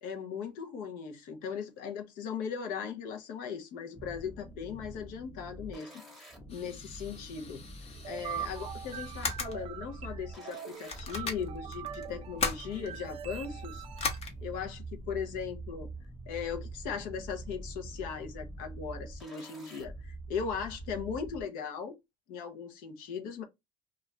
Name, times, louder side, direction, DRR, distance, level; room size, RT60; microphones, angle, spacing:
voice 1, 0.0-5.9 6.2-7.6 8.0-13.9 14.4-15.9 16.3-22.0 22.3-23.4, left 6 dB, 75° left, 0.7 m, -38 dB
sound 1, 3.9-21.4, right 2 dB, ahead, 1.0 m, -45 dB
sound 2, 6.5-9.6 10.3-10.4 10.9-13.1 14.0-14.3, left 4 dB, 45° left, 0.9 m, -38 dB
sound 3, 7.9-14.2, right 10 dB, 40° right, 0.4 m, -43 dB
2.4 x 2.3 x 3.0 m
supercardioid pair, 100°, 15 cm